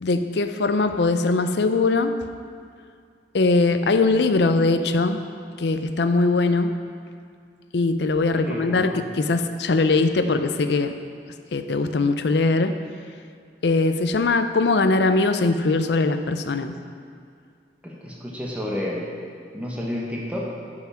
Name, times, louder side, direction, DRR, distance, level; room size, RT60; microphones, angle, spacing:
voice 1, 0.0-2.1 3.3-5.2 5.6-6.7 7.7-10.9 11.5-12.7 13.6-16.7, left 3 dB, 70° left, 9 dB, 0.5 m, -21 dB
voice 2, 8.4-9.0 17.8-19.0 19.5-20.5, left 1 dB, 10° right, -4 dB, 1.3 m, -30 dB
9.2 x 5.8 x 5.8 m, 2.2 s
head